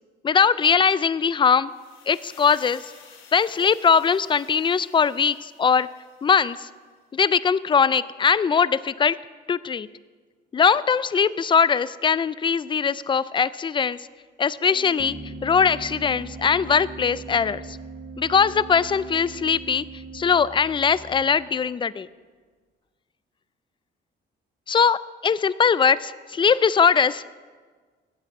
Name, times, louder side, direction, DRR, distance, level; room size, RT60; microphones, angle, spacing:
voice 1, 0.2-1.7 2.1-2.8 3.3-5.9 6.2-6.7 7.1-9.2 9.5-9.9 10.5-14.0 14.4-15.2 15.4-17.8 18.2-19.8 20.1-22.1 24.7-27.4, left 6 dB, 25° left, 18 dB, 0.4 m, -21 dB
sound 1, 1.7-6.7, left 6 dB, 85° left, 1.6 m, -52 dB
Organ, 14.6-21.1, right 6 dB, 65° right, 0.9 m, -43 dB
Bass guitar, 15.0-21.2, right 1 dB, 5° left, 1.0 m, -43 dB
8.8 x 8.2 x 8.4 m, 1.5 s
cardioid pair, 90°, 20 cm